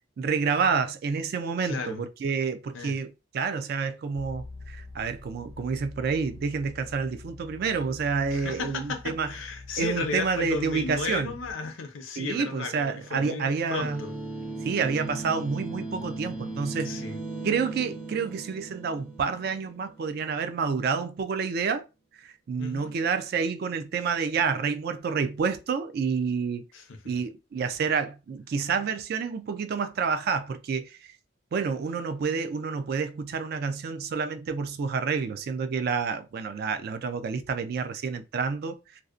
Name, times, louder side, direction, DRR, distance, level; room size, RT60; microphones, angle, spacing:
voice 1, 0.2-9.3 9.8-11.3 12.2-14.0 14.6-17.1 17.4-21.9 22.2-26.6 27.1-31.0 31.5-39.0, right 5 dB, 55° right, 0.3 m, -29 dB
voice 2, 1.6-2.0 2.7-3.0 8.3-14.1 16.8-17.2 22.6-23.0 26.7-27.0, left 4 dB, 85° left, 0.5 m, -34 dB
sound 1, 4.2-11.5, left 3 dB, 30° right, 1.2 m, -45 dB
sound 2, 13.8-20.4, right 2 dB, 5° right, 0.5 m, -37 dB
2.6 x 2.0 x 2.4 m
head